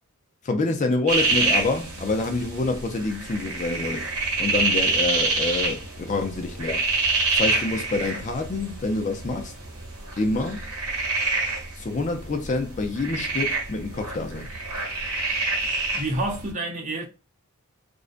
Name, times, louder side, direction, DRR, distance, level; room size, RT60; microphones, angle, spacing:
voice 1, 0.4-4.1 4.4-6.8 7.3-9.5 10.2-10.6 11.8-14.5, left 3 dB, 35° left, 0.4 m, -27 dB
sound 1, 1.1-16.5, right 3 dB, 80° right, 1.1 m, -27 dB
voice 2, 15.6-17.1, right 2 dB, 35° right, 0.7 m, -29 dB
2.4 x 2.1 x 2.4 m
head